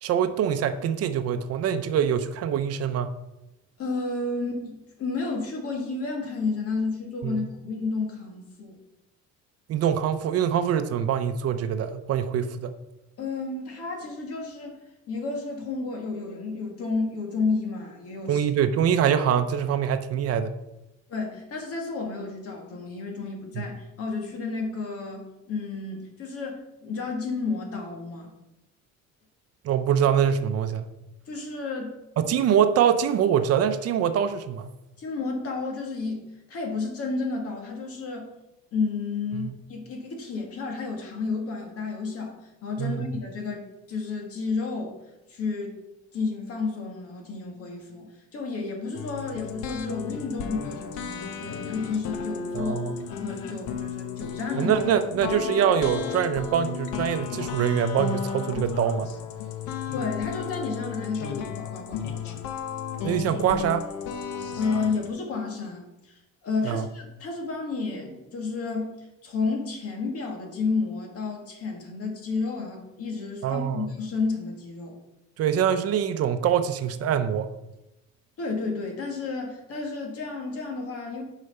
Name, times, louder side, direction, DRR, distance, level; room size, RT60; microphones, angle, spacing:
voice 1, 0.0-3.1 7.2-7.4 9.7-12.7 18.3-20.5 23.5-23.6 29.6-30.9 32.2-34.7 39.3-39.5 42.8-43.1 52.5-52.9 54.5-59.1 63.0-63.9 66.6-66.9 73.4-73.9 75.4-77.5, right 8 dB, 55° right, 9 dB, 0.6 m, -24 dB
voice 2, 3.8-8.8 13.2-14.8 15.1-18.4 21.1-28.3 31.3-32.0 35.0-36.2 36.5-38.3 38.7-45.0 45.3-45.8 46.1-52.8 53.2-54.7 59.9-62.4 64.5-75.0 78.4-81.2, left 4 dB, 55° left, 1 dB, 2.1 m, -31 dB
sound 1, 48.9-65.1, left 7 dB, 85° left, 1.0 m, -34 dB
9.9 x 4.9 x 5.4 m, 0.94 s
cardioid pair, 175°, 29 cm